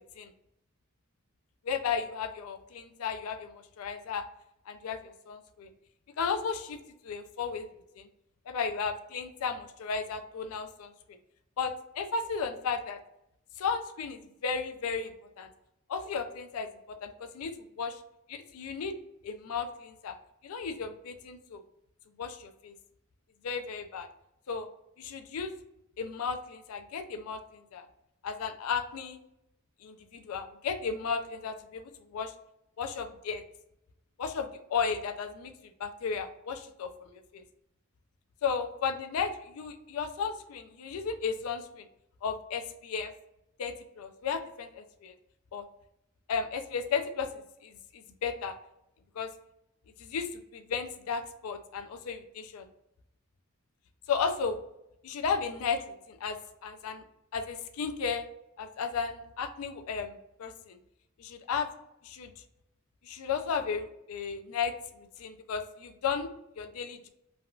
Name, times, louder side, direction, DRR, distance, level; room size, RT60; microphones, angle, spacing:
voice 1, 1.6-4.2 4.7-5.7 6.2-6.8 7.0-7.7 8.0-8.1 8.5-10.9 11.6-13.0 13.6-15.5 15.9-18.0 18.3-18.9 19.2-20.1 20.4-21.6 22.2-22.7 23.4-24.1 24.5-24.7 25.0-25.5 26.0-27.4 27.7-27.9 28.2-29.2 29.8-31.8 32.1-32.3 32.8-33.4 34.2-35.5 35.8-37.4 38.4-41.9 42.2-43.1 43.6-45.1 45.5-45.7 46.3-47.3 47.6-48.6 49.2-49.3 50.0-52.7 54.1-54.6 55.0-57.0 57.3-58.3 58.6-60.8 61.2-61.7 62.0-62.3 63.0-64.7 65.2-66.3 66.6-67.1, left 6 dB, 85° left, 8 dB, 0.4 m, -34 dB
3.4 x 2.3 x 2.3 m, 0.83 s
head